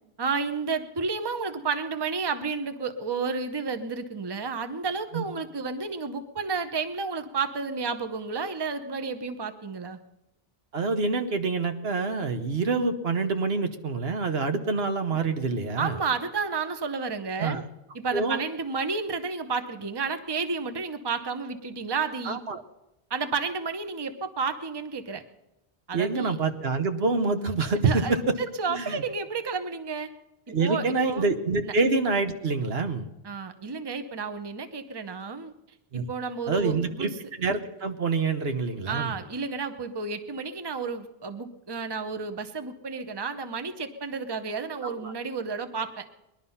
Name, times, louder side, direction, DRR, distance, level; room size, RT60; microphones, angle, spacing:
voice 1, 0.2-10.0 14.5-14.7 15.8-17.6 17.9-22.4 23.1-25.2 25.9-26.4 27.8-28.2 28.6-30.1 30.6-31.2 33.2-35.5 35.9-37.1 38.9-46.1, right 4 dB, 25° right, 9 dB, 0.9 m, -31 dB
voice 2, 10.7-16.0 17.4-17.6 18.1-18.4 22.2-22.6 25.9-28.4 28.7-29.0 30.5-33.1 35.9-36.1 36.5-39.1 44.8-45.1, right 4 dB, 75° right, 7 dB, 1.3 m, -26 dB
20.5 x 11.5 x 5.6 m, 0.94 s
omnidirectional pair, 1.1 m